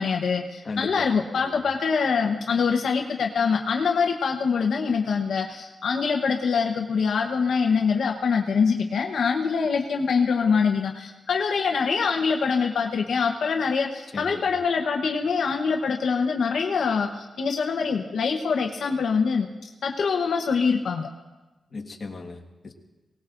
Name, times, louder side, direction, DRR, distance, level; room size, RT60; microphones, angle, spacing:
voice 1, 0.0-21.1, left 5 dB, 80° left, 2 dB, 0.9 m, -24 dB
voice 2, 0.6-1.6 14.1-14.5 21.7-22.7, left 3 dB, 45° left, 1 dB, 1.6 m, -37 dB
23.5 x 18.5 x 2.6 m, 1.1 s
wide cardioid pair, 115°, 0 cm